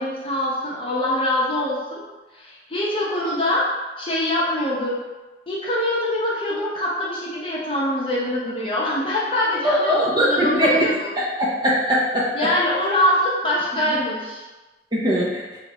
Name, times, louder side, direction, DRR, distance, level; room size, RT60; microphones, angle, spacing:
voice 1, 0.0-2.0 2.3-3.7 4.0-5.0 5.5-11.1 12.3-14.4, left 1 dB, 30° left, -6 dB, 0.7 m, -24 dB
voice 2, 9.6-10.7 11.4-12.3 14.9-15.3, equal, 25° right, -5 dB, 0.5 m, -20 dB
2.9 x 2.4 x 4.2 m, 1.2 s
head